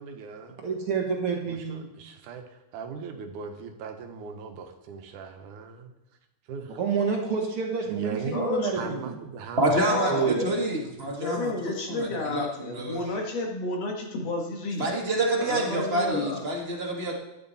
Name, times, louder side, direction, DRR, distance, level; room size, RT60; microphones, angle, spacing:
voice 1, 0.0-0.6 1.4-5.9 6.5-6.8 7.9-10.0, right 4 dB, 85° right, 5 dB, 2.6 m, -39 dB
voice 2, 0.6-1.8 6.8-9.1 10.1-10.5, right 6 dB, 55° right, 1 dB, 1.9 m, -28 dB
voice 3, 8.3-8.9 9.7-14.9 15.4-16.4, left 2 dB, 60° left, 0 dB, 2.7 m, -31 dB
voice 4, 9.6-11.5 11.9-13.0 14.8-17.1, right 1 dB, 30° right, -1 dB, 1.3 m, -27 dB
12.5 x 10.0 x 4.1 m, 0.90 s
omnidirectional pair, 3.5 m